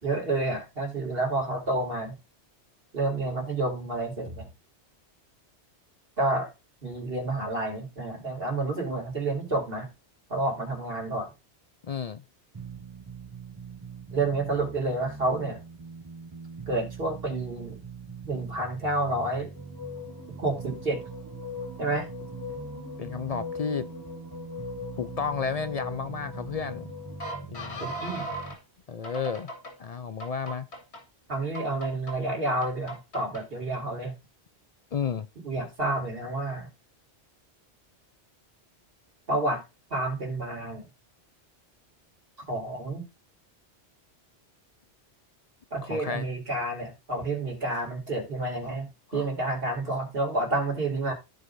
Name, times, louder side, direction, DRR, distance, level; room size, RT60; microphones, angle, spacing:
voice 1, 0.0-2.2 2.9-4.5 6.2-6.5 6.8-9.9 10.3-11.3 14.1-15.6 16.7-17.8 18.2-19.5 20.4-21.0 21.8-22.1 27.8-28.3 31.3-34.1 35.4-36.7 39.3-39.6 39.9-40.9 42.5-43.1 45.7-51.1, right 2 dB, 55° right, 2.9 m, -29 dB
voice 2, 11.8-12.2 23.0-23.9 25.0-26.9 27.4-27.8 28.9-29.5 29.8-30.7 34.9-35.3 45.8-46.3 47.7-47.8 48.6-48.8 49.1-49.3 49.9-50.0, left 6 dB, 55° left, 0.4 m, -32 dB
sound 1, 12.5-28.6, right 5 dB, 25° right, 0.6 m, -43 dB
sound 2, 19.6-28.6 29.0-29.7 30.2-31.0 31.5-32.1 32.6-33.4, left 2 dB, 70° left, 2.4 m, -39 dB
14.5 x 4.9 x 2.6 m
omnidirectional pair, 1.2 m